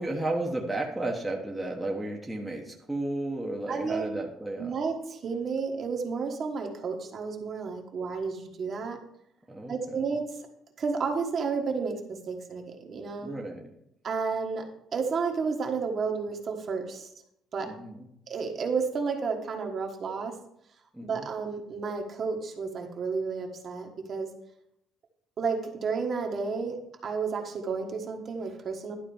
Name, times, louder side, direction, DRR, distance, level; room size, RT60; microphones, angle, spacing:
voice 1, 0.0-4.7 9.5-10.0 13.2-13.7 17.6-18.1 20.9-21.3, right 2 dB, 5° right, -1 dB, 1.1 m, -33 dB
voice 2, 3.7-4.1 4.6-9.0 9.7-10.2 10.8-13.3 14.0-14.6 14.9-17.1 17.5-17.7 18.3-20.3 21.0-24.3 25.4-29.0, right 5 dB, 40° right, 2 dB, 1.4 m, -31 dB
11.5 x 4.2 x 7.0 m, 0.77 s
cardioid pair, 150°, 0 cm